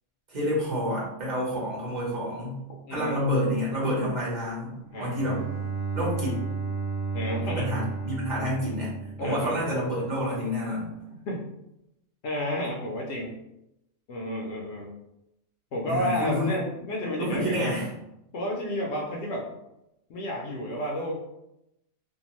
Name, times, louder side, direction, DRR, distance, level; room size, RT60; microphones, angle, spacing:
voice 1, 0.3-2.6 2.9-5.4 5.9-6.4 7.5-9.0 9.2-10.9 15.8-16.5 17.0-17.9, equal, 40° right, -5 dB, 1.0 m, -29 dB
voice 2, 2.9-3.2 4.9-5.2 7.1-7.7 9.2-9.7 11.3-11.4 12.2-13.4 14.1-14.9 15.7-17.7 18.3-19.5 20.1-21.1, equal, 65° left, -1 dB, 0.8 m, -31 dB
Bowed string instrument, 4.9-9.9, right 4 dB, 70° right, 0.9 m, -33 dB
2.7 x 2.2 x 2.9 m, 0.86 s
omnidirectional pair, 1.3 m